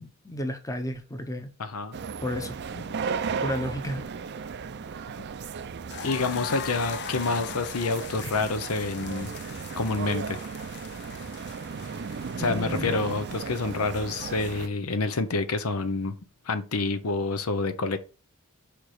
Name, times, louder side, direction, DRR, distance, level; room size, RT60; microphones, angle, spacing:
voice 1, 0.0-1.5 2.2-3.0 3.4-4.0 12.4-13.0, left 1 dB, 15° left, 0.8 m, -33 dB
voice 2, 1.6-2.0 6.0-9.3 9.8-10.4 12.4-16.2 16.5-18.0, left 3 dB, 90° left, 0.8 m, -28 dB
sound 1, 1.9-14.7, right 5 dB, 50° right, 0.5 m, -35 dB
sound 2, 5.9-14.6, left 8 dB, 50° left, 0.5 m, -41 dB
5.1 x 4.6 x 4.9 m
head